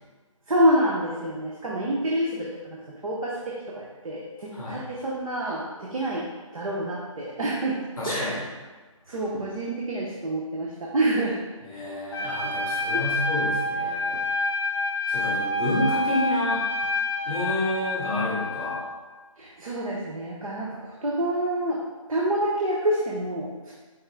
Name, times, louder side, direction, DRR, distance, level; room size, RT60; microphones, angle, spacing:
voice 1, 0.5-6.3 6.5-7.8 8.1-8.4 9.1-11.4 12.9-13.1 14.1-14.2 19.4-21.8 22.1-23.7, right 1 dB, 80° right, -4 dB, 0.8 m, -27 dB
voice 2, 8.0-8.4 11.6-14.2 15.1-16.6 17.2-18.8, left 1 dB, ahead, -20 dB, 0.4 m, -29 dB
Trumpet, 12.1-18.8, left 2 dB, 45° left, 0.6 m, -27 dB
4.6 x 3.2 x 3.6 m, 1.3 s
hypercardioid pair, 170°, 17 cm